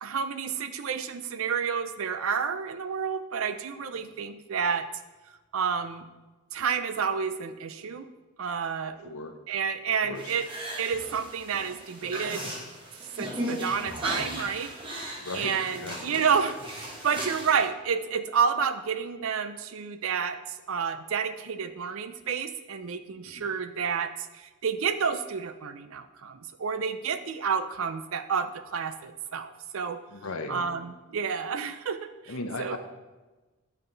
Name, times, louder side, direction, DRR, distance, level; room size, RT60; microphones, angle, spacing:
voice 1, 0.0-4.9 5.5-6.0 6.5-8.1 8.4-9.1 9.5-10.5 10.8-12.5 13.2-20.4 20.7-30.0 30.5-32.3 32.6-32.8, right 6 dB, 70° right, 11 dB, 0.5 m, -30 dB
voice 2, 9.0-9.3 10.0-10.4 15.2-15.5 15.8-16.2 23.2-23.5 30.1-30.6 32.3-32.8, left 2 dB, 80° left, 6 dB, 0.9 m, -37 dB
sound 1, 10.1-17.6, equal, 25° right, 1.1 m, -37 dB
9.1 x 5.8 x 3.9 m, 1.2 s
head